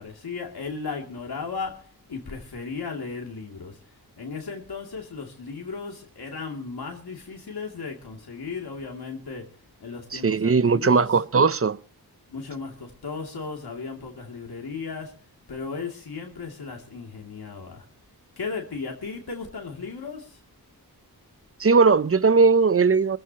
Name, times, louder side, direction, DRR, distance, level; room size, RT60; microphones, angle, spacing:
voice 1, 0.0-11.2 12.3-15.2 15.5-17.9 18.4-20.4, left 4 dB, 80° left, 2.8 m, -36 dB
voice 2, 10.1-11.8 21.6-23.2, right 4 dB, 35° right, 0.7 m, -19 dB
25.5 x 14.5 x 3.0 m
wide cardioid pair, 95°, 37 cm